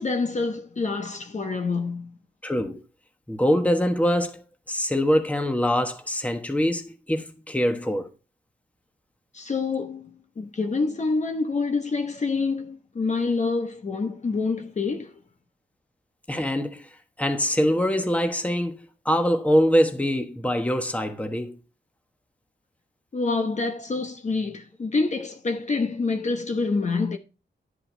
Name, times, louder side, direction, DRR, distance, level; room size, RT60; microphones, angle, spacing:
voice 1, 0.0-2.2 9.3-15.2 23.1-27.2, left 4 dB, 40° left, 1.0 m, -27 dB
voice 2, 2.4-2.8 3.3-8.1 16.3-16.9 17.2-21.6, equal, 5° left, 1.2 m, -24 dB
10.5 x 7.7 x 3.3 m
wide cardioid pair, 135°, 18 cm